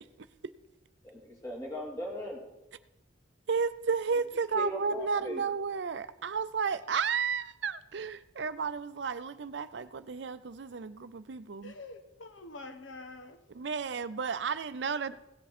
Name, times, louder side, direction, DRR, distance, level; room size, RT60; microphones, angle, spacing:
voice 1, 1.0-2.4 4.5-5.4, left 1 dB, 20° left, -3 dB, 2.4 m, -38 dB
voice 2, 3.5-11.7 13.5-15.1, right 5 dB, 65° right, 14 dB, 0.5 m, -32 dB
voice 3, 11.6-13.4 15.1-15.2, left 2 dB, 85° left, 7 dB, 1.1 m, -46 dB
16.5 x 7.5 x 4.3 m, 0.95 s
head